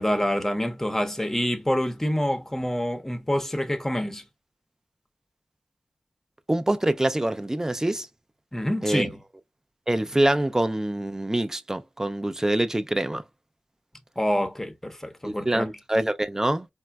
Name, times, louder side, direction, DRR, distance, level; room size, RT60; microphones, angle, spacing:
voice 1, 0.0-4.2 8.5-9.2 14.2-15.7, equal, 10° left, 0.7 m, -26 dB
voice 2, 6.5-8.1 8.8-9.1 9.9-13.2 15.2-16.7, right 1 dB, 20° right, 0.4 m, -25 dB
4.3 x 2.1 x 2.3 m
wide cardioid pair, 65°, 3 cm